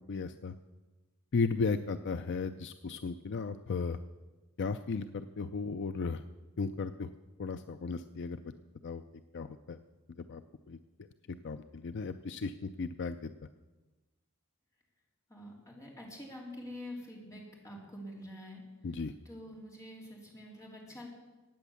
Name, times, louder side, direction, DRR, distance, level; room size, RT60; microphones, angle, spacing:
voice 1, 0.1-0.5 1.3-4.0 4.6-6.2 6.6-7.1 7.4-8.5 8.8-9.0 9.3-9.8 10.2-10.4 10.7-10.8 11.3-13.3 18.8-19.1, left 4 dB, 55° left, 10 dB, 0.5 m, -35 dB
voice 2, 15.3-18.6 18.9-19.0 19.2-21.1, left 1 dB, 15° left, -2 dB, 3.4 m, -46 dB
16.5 x 9.1 x 7.1 m, 1.2 s
head